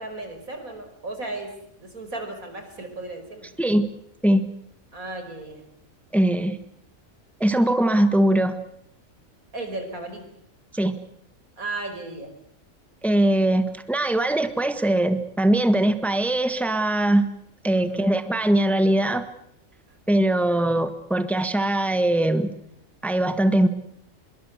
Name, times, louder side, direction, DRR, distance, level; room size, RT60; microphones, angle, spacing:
voice 1, 0.0-3.5 4.9-5.6 9.5-10.3 11.6-12.3 17.8-18.1, right 2 dB, 90° right, 6 dB, 5.6 m, -35 dB
voice 2, 6.1-6.6 7.4-8.6 10.7-11.0 13.0-17.3 17.6-19.2 20.1-22.5 23.0-23.7, right 1 dB, ahead, 10 dB, 1.5 m, -21 dB
25.0 x 22.5 x 8.1 m, 0.73 s
omnidirectional pair, 1.4 m